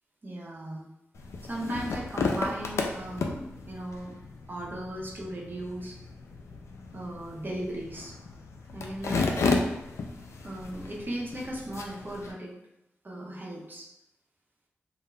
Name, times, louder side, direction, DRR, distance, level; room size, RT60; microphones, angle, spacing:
voice 1, 0.2-0.9 1.4-4.2 4.5-6.0 6.9-8.1 8.7-9.3 10.4-12.5 13.0-13.9, right 1 dB, 45° right, -3 dB, 0.8 m, -37 dB
sound 1, 1.2-12.3, left 3 dB, 75° left, 0.3 m, -33 dB
2.4 x 2.1 x 3.1 m, 0.85 s
cardioid pair, 40°, 5 cm